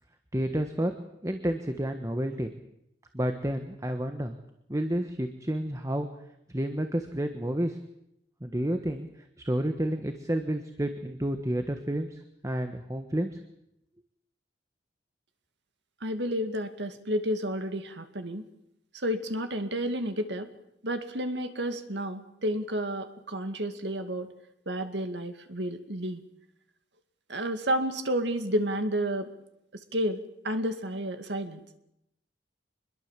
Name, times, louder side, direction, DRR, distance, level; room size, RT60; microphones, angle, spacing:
voice 1, 0.3-0.9 1.2-2.5 3.1-4.3 4.7-6.1 6.5-7.8 8.4-9.1 9.4-13.4, right 1 dB, 15° right, 6 dB, 1.4 m, -30 dB
voice 2, 16.0-18.4 18.9-20.5 20.8-24.3 24.7-26.2 27.3-29.3 29.7-31.6, equal, 70° right, 7 dB, 2.3 m, -31 dB
25.0 x 21.5 x 7.5 m, 0.82 s
head